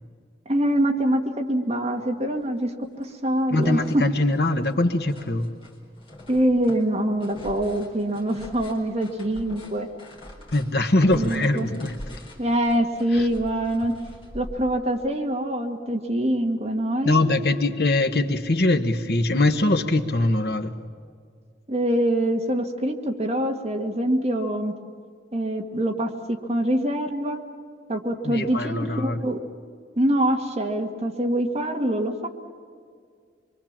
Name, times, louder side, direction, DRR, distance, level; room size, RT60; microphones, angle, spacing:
voice 1, 0.5-2.7 3.0-4.0 6.3-9.9 11.1-11.7 12.4-13.9 14.3-17.7 21.7-24.7 25.3-27.4 27.9-29.4 30.0-32.3, right 1 dB, 35° right, 2 dB, 1.9 m, -24 dB
sound 1, 2.0-2.1 2.4-3.1 3.4-15.1, left 1 dB, 30° left, 4.1 m, -44 dB
voice 2, 3.5-5.5 10.5-12.2 13.1-13.3 17.0-20.7 28.2-29.2, left 2 dB, 60° left, 7 dB, 1.2 m, -22 dB
25.0 x 23.5 x 7.4 m, 2.1 s
head